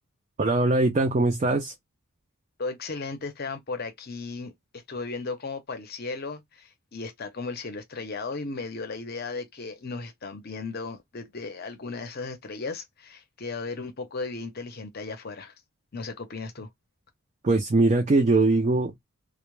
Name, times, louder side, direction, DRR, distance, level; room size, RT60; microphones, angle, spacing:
voice 1, 0.4-1.7 17.4-18.9, right 2 dB, 30° right, 0.4 m, -21 dB
voice 2, 2.6-15.5 15.9-16.7, left 3 dB, 45° left, 0.6 m, -36 dB
2.1 x 2.1 x 3.0 m
head